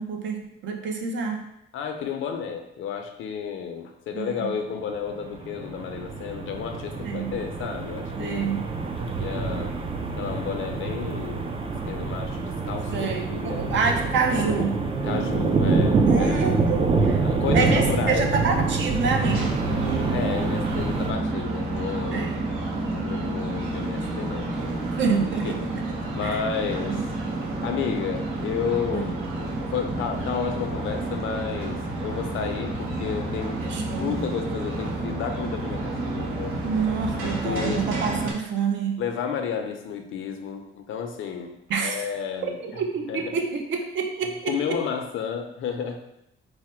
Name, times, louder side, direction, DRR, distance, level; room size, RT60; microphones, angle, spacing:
voice 1, 0.0-1.5 4.1-4.5 7.0-7.3 8.2-8.6 12.9-14.8 16.1-17.2 17.5-19.6 22.1-22.4 25.0-25.7 26.0-26.4 26.8-27.0 28.9-29.0 33.6-34.3 36.6-39.0 41.7-42.0 42.4-44.8, right 5 dB, 65° right, 3 dB, 0.7 m, -27 dB
voice 2, 1.7-8.5 9.2-9.8 10.2-11.4 11.9-13.7 15.0-16.6 17.2-18.3 20.1-22.3 22.9-24.5 25.5-25.7 26.1-27.0 27.6-33.6 33.9-36.5 37.4-37.9 39.0-41.5 41.8-42.8 43.1-43.2 44.2-46.0, left 7 dB, 70° left, 5 dB, 0.6 m, -32 dB
sound 1, 5.2-21.1, right 4 dB, 25° right, 0.4 m, -26 dB
sound 2, 19.2-38.3, right 2 dB, 80° right, 1.0 m, -30 dB
4.8 x 2.1 x 4.3 m, 0.81 s
cardioid pair, 145°, 21 cm